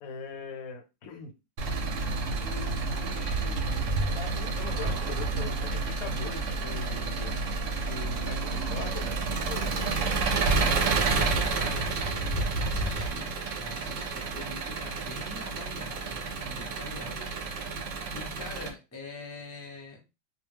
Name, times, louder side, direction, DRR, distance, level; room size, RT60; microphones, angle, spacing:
voice 1, 0.0-1.3 2.4-3.9 4.1-7.3 7.9-10.1, left 5 dB, 80° left, 1.0 m, -41 dB
Engine, 1.6-18.7, right 3 dB, 70° right, 0.9 m, -30 dB
voice 2, 11.5-17.8 18.1-20.0, left 2 dB, 15° left, 0.5 m, -45 dB
2.3 x 2.1 x 3.2 m
omnidirectional pair, 1.5 m